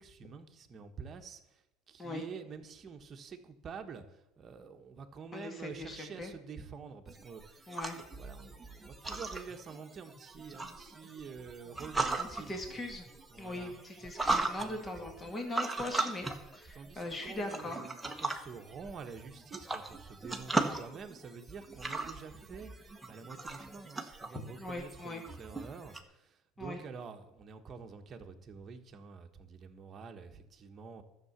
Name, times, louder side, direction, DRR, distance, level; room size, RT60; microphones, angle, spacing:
voice 1, 0.0-1.6 1.9-7.7 8.2-12.6 13.3-13.8 14.5-15.3 16.7-31.0, right 5 dB, 30° right, 5 dB, 1.4 m, -48 dB
voice 2, 5.3-6.3 7.7-8.0 12.2-13.1 13.4-17.8 24.3-25.2 26.6-26.8, left 2 dB, 20° left, 3 dB, 2.2 m, -40 dB
sound 1, 7.1-26.0, right 3 dB, 10° right, 1.2 m, -38 dB
12.0 x 6.9 x 8.2 m, 0.92 s
supercardioid pair, 125°, 0 cm